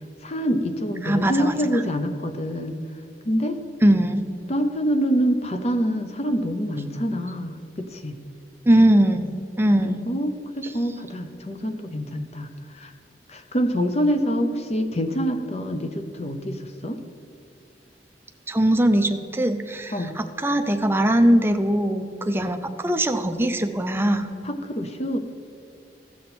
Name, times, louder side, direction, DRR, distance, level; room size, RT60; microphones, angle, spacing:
voice 1, 0.2-2.8 3.2-3.6 4.5-8.2 9.8-12.5 12.8-12.9 13.3-17.0 19.9-20.1 24.4-25.2, equal, 35° left, 7 dB, 0.7 m, -26 dB
voice 2, 1.0-1.5 3.8-4.2 8.7-9.3 9.6-10.0 18.5-24.3, right 1 dB, 15° right, 6 dB, 0.5 m, -20 dB
16.0 x 6.2 x 4.2 m, 2.6 s
head